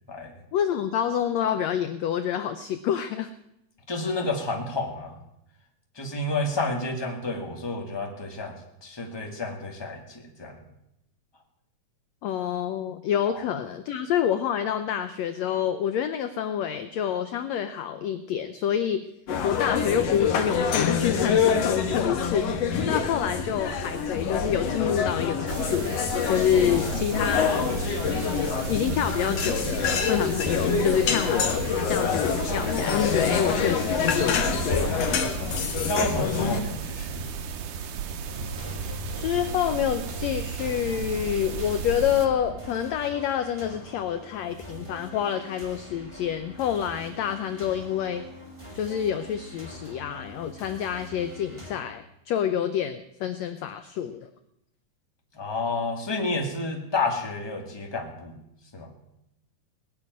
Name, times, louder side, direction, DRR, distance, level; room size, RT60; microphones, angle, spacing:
voice 1, 0.5-3.3 12.2-19.1 19.4-26.0 26.2-27.5 28.7-35.2 39.1-48.2 48.7-54.3, left 9 dB, 75° left, 9 dB, 1.7 m, -27 dB
voice 2, 3.9-5.2 5.9-8.6 8.8-10.6 13.3-13.4 26.7-27.0 35.8-37.2 55.3-58.4 58.7-58.9, left 2 dB, 10° left, 1 dB, 1.8 m, -30 dB
sound 1, 19.3-36.6, left 6 dB, 55° left, 2.2 m, -26 dB
sound 2, 25.5-42.3, right 6 dB, 75° right, 2.6 m, -34 dB
sound 3, 38.2-51.8, equal, 10° right, 3.0 m, -42 dB
20.0 x 6.8 x 9.5 m, 0.83 s
omnidirectional pair, 3.7 m